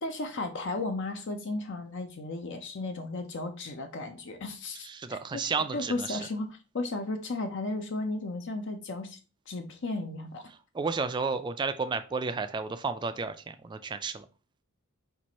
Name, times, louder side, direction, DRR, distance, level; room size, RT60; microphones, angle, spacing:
voice 1, 0.0-9.2 9.5-10.4, left 2 dB, 55° left, 6 dB, 0.6 m, -35 dB
voice 2, 4.8-6.2 10.7-14.2, right 4 dB, 20° right, 9 dB, 0.3 m, -32 dB
4.5 x 2.5 x 4.1 m, 0.34 s
head